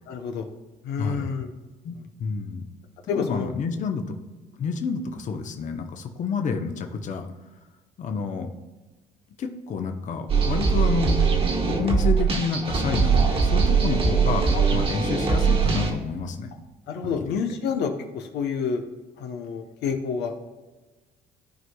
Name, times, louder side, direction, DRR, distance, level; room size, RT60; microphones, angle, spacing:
voice 1, 0.1-0.5 0.8-1.5 3.1-3.5 14.5-14.8 16.9-18.8 19.2-20.3, left 6 dB, 80° left, 4 dB, 0.9 m, -29 dB
voice 2, 1.0-1.3 1.8-2.6 3.1-4.2 4.6-7.3 8.0-8.5 9.4-11.2 11.6-16.5, left 5 dB, 45° left, 4 dB, 0.9 m, -29 dB
sound 1, 10.3-15.9, right 5 dB, 35° right, 1.4 m, -21 dB
14.0 x 4.7 x 2.3 m, 1.2 s
cardioid pair, 110°, 17 cm